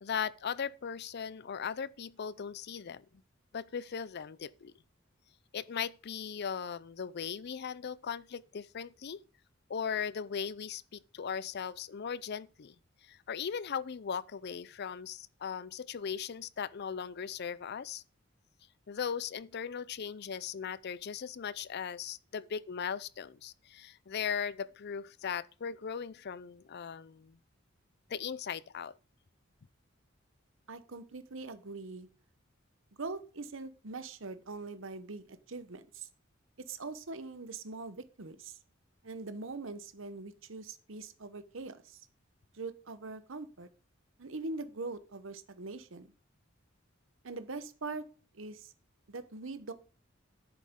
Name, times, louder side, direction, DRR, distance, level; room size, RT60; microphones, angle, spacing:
voice 1, 0.0-3.1 3.5-4.7 5.5-9.2 9.7-12.7 13.0-18.0 18.9-27.4 28.1-29.0, left 7 dB, 55° left, 0.5 m, -38 dB
voice 2, 30.7-32.1 33.0-36.1 36.6-38.6 39.0-42.0 42.5-43.7 44.2-46.1 47.2-48.0 48.3-48.7 49.1-49.7, right 3 dB, 70° right, 1.0 m, -42 dB
10.5 x 8.4 x 3.7 m
head